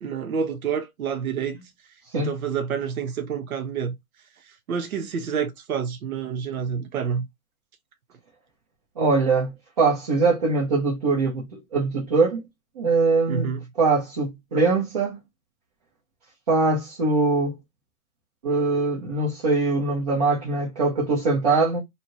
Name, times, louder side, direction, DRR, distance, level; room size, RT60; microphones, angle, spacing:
voice 1, 0.0-1.6 2.1-4.0 4.7-7.3 13.3-13.6, right 7 dB, 70° right, 0.7 m, -28 dB
voice 2, 9.0-12.4 12.8-13.5 13.8-15.2 16.5-17.6 18.4-21.8, right 3 dB, 25° right, 0.7 m, -22 dB
2.8 x 2.4 x 2.9 m
hypercardioid pair, 155°, 43 cm